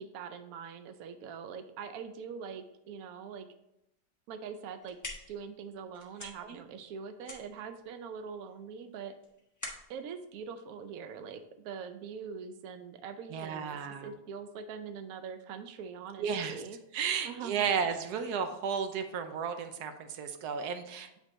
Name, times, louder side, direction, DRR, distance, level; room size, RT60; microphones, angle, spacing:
voice 1, 0.0-3.5 4.3-5.0 5.3-9.1 9.9-16.8 17.2-17.5 17.8-18.0, right 6 dB, 90° right, 8 dB, 0.7 m, -43 dB
sound 1, 4.6-11.4, left 1 dB, 20° left, 0.5 m, -48 dB
voice 2, 6.2-6.6 13.3-14.1 16.2-16.6 16.9-21.1, right 7 dB, 70° right, 7 dB, 1.0 m, -33 dB
8.2 x 3.6 x 3.8 m, 0.86 s
omnidirectional pair, 2.1 m